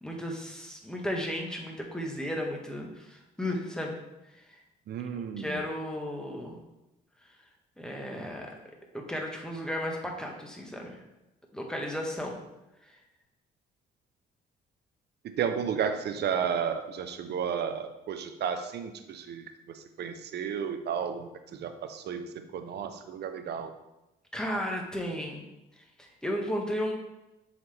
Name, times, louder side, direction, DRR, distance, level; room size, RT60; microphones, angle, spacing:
voice 1, 0.0-4.0 4.3-4.4 5.4-6.6 7.8-8.5 8.9-11.0 11.5-12.3 12.8-12.9 24.3-25.4 25.8-26.9, equal, 5° left, 0 dB, 1.5 m, -34 dB
voice 2, 4.9-5.6 15.2-22.3 22.5-23.7, right 7 dB, 60° right, 8 dB, 0.7 m, -33 dB
6.9 x 4.2 x 3.5 m, 0.96 s
supercardioid pair, 65°, 19 cm